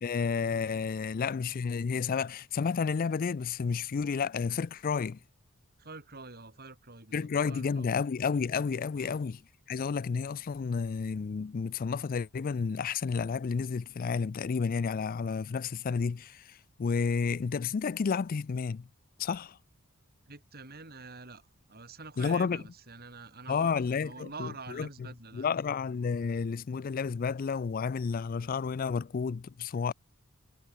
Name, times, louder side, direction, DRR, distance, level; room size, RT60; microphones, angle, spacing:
voice 1, 0.0-5.2 7.1-9.4 9.7-18.9 19.2-19.6 22.2-22.6 23.5-24.9 25.3-29.9, left 5 dB, 40° left, 0.3 m, -31 dB
voice 2, 5.8-8.0 8.9-9.3 20.3-25.5, right 4 dB, 45° right, 4.4 m, -46 dB
head